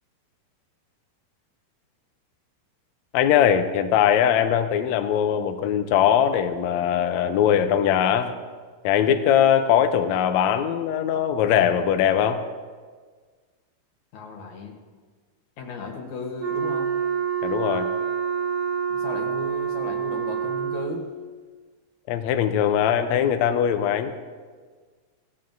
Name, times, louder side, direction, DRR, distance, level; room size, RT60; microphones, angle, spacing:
voice 1, 3.1-8.3 8.8-12.4 17.4-17.9 22.1-24.1, left 9 dB, 85° left, 8 dB, 1.6 m, -21 dB
voice 2, 14.1-14.7 15.6-17.0 18.9-21.1, left 4 dB, 70° left, 2 dB, 2.4 m, -35 dB
Wind instrument woodwind instrument, 16.4-21.1, right 7 dB, 65° right, 4.3 m, -27 dB
16.5 x 14.0 x 2.6 m, 1.5 s
omnidirectional pair, 3.8 m